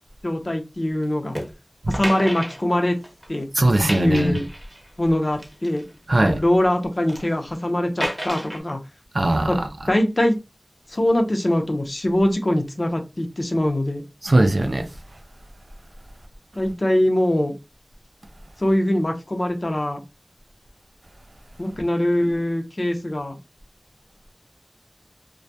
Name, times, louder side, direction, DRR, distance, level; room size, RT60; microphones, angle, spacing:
voice 1, 0.2-1.4 1.9-3.0 3.3-3.5 4.0-4.4 5.0-5.8 6.2-8.8 9.5-9.6 9.9-10.4 10.9-14.0 16.6-17.5 18.6-20.0 21.6-23.4, left 1 dB, 55° left, 0.6 m, -22 dB
sound 1, 1.3-1.5 1.9-3.3 3.6-4.9 5.3-6.4 6.8-7.3 8.0-8.6, equal, 10° right, 0.7 m, -32 dB
voice 2, 3.5-4.4 6.1-6.4 9.1-9.6 14.2-14.9, right 1 dB, 75° right, 0.4 m, -19 dB
2.2 x 2.1 x 2.6 m
wide cardioid pair, 45°, 0 cm